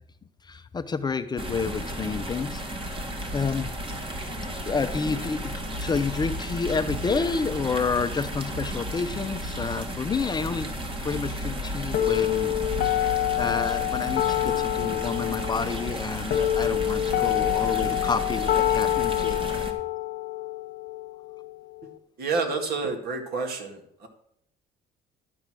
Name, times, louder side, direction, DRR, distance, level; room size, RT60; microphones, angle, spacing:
voice 1, 0.4-3.1 3.3-3.7 4.7-10.7 11.0-12.6 13.4-19.4, left 5 dB, 25° left, 10 dB, 0.6 m, -29 dB
sound 1, 1.4-19.7, equal, 30° right, 1.7 m, -33 dB
sound 2, 11.9-21.9, left 13 dB, 65° left, 1.1 m, -27 dB
voice 2, 22.2-24.1, right 4 dB, 65° right, 3 dB, 2.2 m, -29 dB
11.5 x 4.8 x 7.5 m, 0.72 s
cardioid pair, 110°, 17 cm